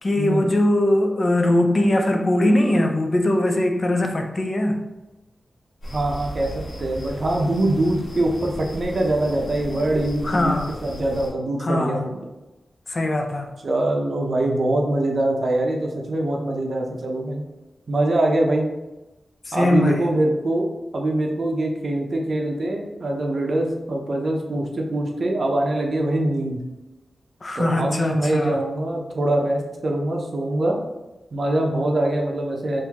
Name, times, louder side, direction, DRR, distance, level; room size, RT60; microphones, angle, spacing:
voice 1, 0.0-4.8 10.2-10.7 11.6-12.1 12.9-13.5 19.5-20.1 27.4-28.6, left 1 dB, 45° left, 3 dB, 0.5 m, -21 dB
sound 1, 5.8-11.3, equal, 75° left, 1.4 m, -36 dB
voice 2, 5.9-6.5 6.8-10.6 10.8-12.2 13.6-17.4 17.9-18.7 19.5-20.7 20.9-26.6 27.5-30.8 31.3-32.8, right 1 dB, 60° right, 1 dB, 0.6 m, -23 dB
3.6 x 2.6 x 2.9 m, 1.0 s
cardioid pair, 70°, 0 cm